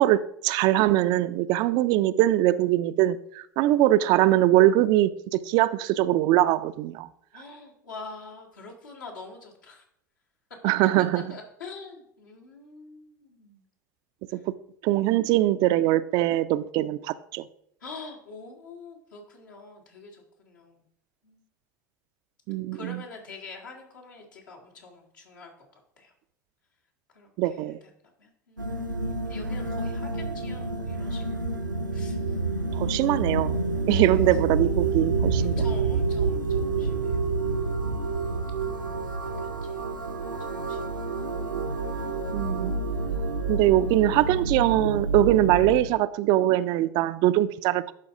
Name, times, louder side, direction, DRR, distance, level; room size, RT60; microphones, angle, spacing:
voice 1, 0.0-7.1 10.6-11.2 14.3-14.5 14.8-17.4 22.5-23.0 27.4-27.8 32.7-33.6 33.9-35.6 42.3-42.7 43.5-47.9, right 14 dB, 45° right, 0.3 m, -22 dB
voice 2, 7.3-9.8 11.3-13.6 14.3-14.4 17.8-20.9 21.2-21.4 22.7-26.1 27.1-31.7 31.9-32.4 33.9-34.4 35.3-37.2 39.2-40.3 40.7-41.4 41.8-42.5, left 3 dB, 75° left, 1.8 m, -46 dB
sound 1, 28.6-45.8, right 3 dB, 90° right, 0.7 m, -28 dB
11.5 x 4.1 x 3.7 m
figure-of-eight pair, 75°, 10 cm